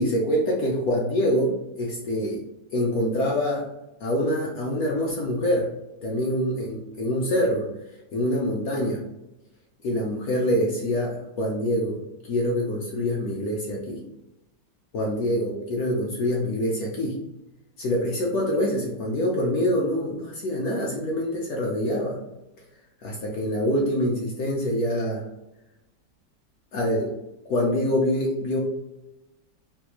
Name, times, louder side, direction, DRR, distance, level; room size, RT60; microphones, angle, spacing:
voice 1, 0.0-2.4 2.7-3.7 4.0-5.7 6.0-7.7 8.1-9.0 9.8-14.0 14.9-17.2 17.8-22.2 23.0-25.2 26.7-27.1 27.5-28.6, equal, 65° left, -2 dB, 1.0 m, -25 dB
3.3 x 2.3 x 2.9 m, 0.92 s
omnidirectional pair, 1.9 m